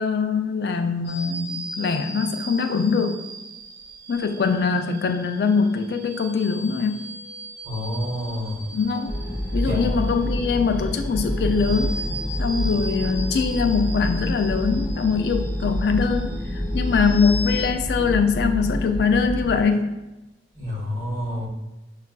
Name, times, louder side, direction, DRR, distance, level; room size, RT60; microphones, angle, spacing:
voice 1, 0.0-3.2 4.1-7.0 8.7-9.2 9.5-12.0 12.4-19.9, left 5 dB, 65° left, 6 dB, 0.3 m, -22 dB
sound 1, 1.0-17.6, equal, 70° right, 0.7 m, -38 dB
voice 2, 7.6-8.6 9.6-9.9 20.6-21.5, left 1 dB, 45° right, -4 dB, 1.1 m, -28 dB
sound 2, 9.1-19.6, equal, 5° right, 0.7 m, -27 dB
6.5 x 2.4 x 2.3 m, 1.0 s
head